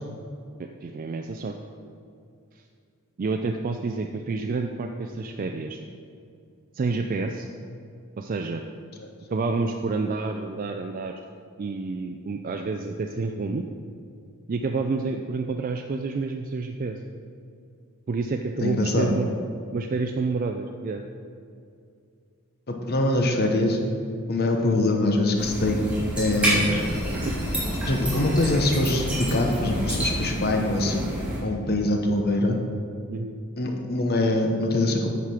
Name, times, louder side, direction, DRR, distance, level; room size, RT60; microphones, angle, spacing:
voice 1, 0.6-1.6 3.2-5.8 6.7-7.5 8.2-8.6 9.3-11.1 11.6-13.6 14.5-17.0 18.1-19.3 19.7-21.0 27.1-27.5 33.1-33.4, right 3 dB, 40° right, 4 dB, 0.4 m, -29 dB
voice 2, 18.6-19.1 22.7-23.8 24.3-25.9 26.2-26.8 27.9-31.1 31.4-32.6 33.6-35.1, left 1 dB, 45° left, 3 dB, 0.9 m, -23 dB
sound 1, 25.4-31.4, equal, 5° right, 2.3 m, -28 dB
9.6 x 4.9 x 5.7 m, 2.4 s
head